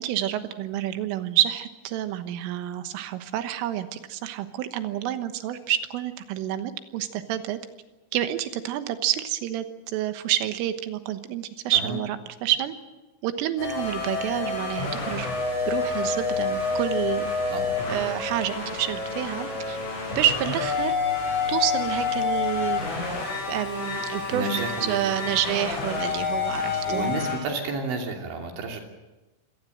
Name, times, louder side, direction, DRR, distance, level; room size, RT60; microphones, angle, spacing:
voice 1, 0.0-7.6 8.1-12.7 13.2-15.3 15.7-17.3 17.9-19.8 20.1-21.0 21.5-22.8 23.5-24.5 24.8-27.1, right 12 dB, 85° right, 9 dB, 3.8 m, -28 dB
sound 1, 13.6-27.4, left 4 dB, 75° left, 8.7 m, -28 dB
voice 2, 24.3-25.4 26.9-28.8, right 3 dB, 70° right, 2 dB, 5.1 m, -31 dB
25.5 x 18.0 x 7.8 m, 1.1 s
omnidirectional pair, 5.7 m